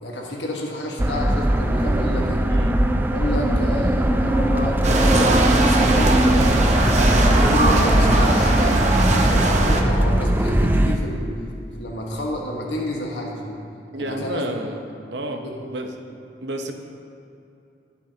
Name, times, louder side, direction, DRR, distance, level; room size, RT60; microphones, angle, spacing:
voice 1, 0.0-2.4 3.1-6.6 7.1-11.3 11.8-13.6 14.0-14.4 15.4-15.5, left 1 dB, 80° left, -1 dB, 1.4 m, -30 dB
sound 1, 1.0-11.0, right 1 dB, 10° right, 0.4 m, -19 dB
sound 2, 4.8-9.8, right 2 dB, 40° right, 0.9 m, -21 dB
sound 3, 6.8-10.2, equal, 55° left, 2.3 m, -26 dB
voice 2, 13.9-14.8 15.1-15.9 16.4-16.7, right 1 dB, 75° right, 4 dB, 0.9 m, -30 dB
19.5 x 7.0 x 2.8 m, 2.7 s
head